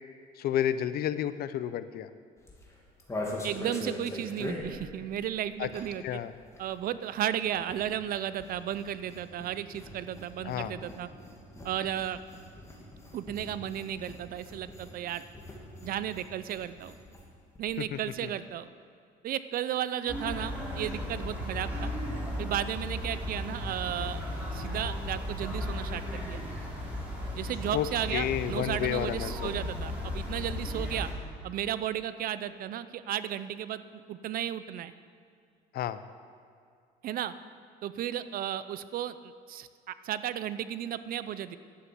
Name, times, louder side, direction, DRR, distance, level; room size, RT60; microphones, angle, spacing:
voice 1, 0.4-2.1 5.6-5.7 6.0-6.3 10.4-10.7 17.9-18.3 27.7-27.9 28.1-29.5 35.7-36.0, left 11 dB, 65° left, 13 dB, 0.6 m, -31 dB
sound 1, 2.4-6.1 6.3-17.3 17.5-17.6 17.9-18.2, left 1 dB, 15° left, 2.6 m, -42 dB
voice 2, 3.4-6.2 6.6-11.1 11.6-12.2 13.1-15.2 15.8-17.0 17.6-18.7 19.2-21.9 22.4-24.2 24.5-26.4 27.4-31.1 31.4-34.9 37.0-37.3 37.8-41.6, right 11 dB, 60° right, 14 dB, 0.6 m, -34 dB
sound 2, 20.1-31.1, left 1 dB, 10° right, 3.7 m, -35 dB
11.5 x 8.3 x 7.8 m, 2.3 s
cardioid pair, 110°, 17 cm